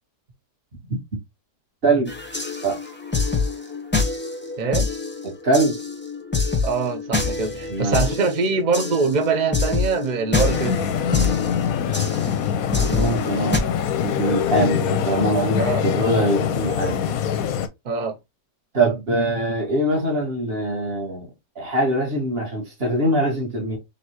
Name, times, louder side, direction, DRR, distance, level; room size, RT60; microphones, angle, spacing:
voice 1, 1.8-2.1 2.6-2.8 5.2-5.8 7.7-8.0 12.9-13.7 14.0-17.2 18.7-21.3 21.5-23.8, right 1 dB, 35° right, 1.7 m, -23 dB
sound 1, 2.1-13.6, left 4 dB, 10° left, 0.6 m, -26 dB
voice 2, 4.6-4.9 6.6-10.9 15.6-15.8 17.8-18.2, right 4 dB, 85° right, 0.4 m, -23 dB
sound 2, 10.4-17.7, left 8 dB, 65° left, 0.9 m, -24 dB
4.1 x 3.5 x 2.9 m
omnidirectional pair, 1.8 m